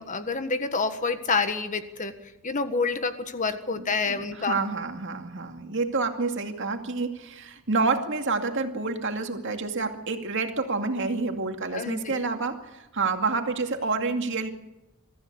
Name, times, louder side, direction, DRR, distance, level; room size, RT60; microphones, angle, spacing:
voice 1, 0.0-2.1 2.4-4.6 11.7-12.2, left 4 dB, 35° left, 9 dB, 1.5 m, -28 dB
voice 2, 4.1-14.5, right 3 dB, 60° right, 5 dB, 2.3 m, -28 dB
22.5 x 14.0 x 8.2 m, 0.97 s
head